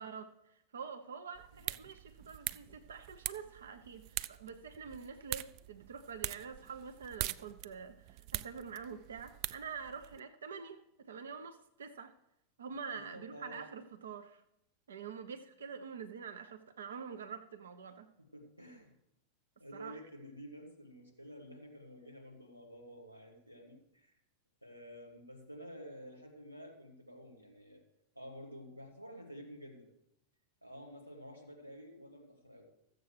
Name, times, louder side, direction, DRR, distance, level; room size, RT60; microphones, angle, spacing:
voice 1, 0.0-12.1 12.6-14.4 14.9-18.1 19.7-20.0, right 6 dB, 65° right, 0.7 m, -46 dB
sound 1, 1.3-10.2, right 16 dB, 40° right, 0.3 m, -43 dB
voice 2, 12.9-13.6 18.2-18.9 19.6-24.1 24.6-27.8 28.1-29.9 30.6-32.7, equal, 90° right, 2.0 m, -51 dB
14.0 x 7.5 x 4.7 m
figure-of-eight pair, 90°, 0 cm